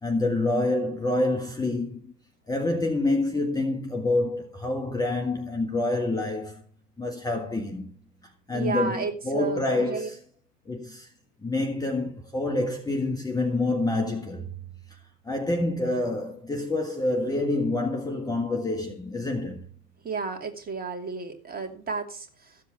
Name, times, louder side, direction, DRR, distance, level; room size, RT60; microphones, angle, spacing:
voice 1, 0.0-2.1 2.5-6.6 7.0-7.9 8.2-10.2 10.7-11.1 11.4-14.5 14.9-15.0 15.2-19.7, left 2 dB, 10° left, 1.5 m, -27 dB
voice 2, 8.5-10.1 20.0-22.6, right 4 dB, 20° right, 2.6 m, -32 dB
14.5 x 7.8 x 5.9 m
figure-of-eight pair, 90°, 48 cm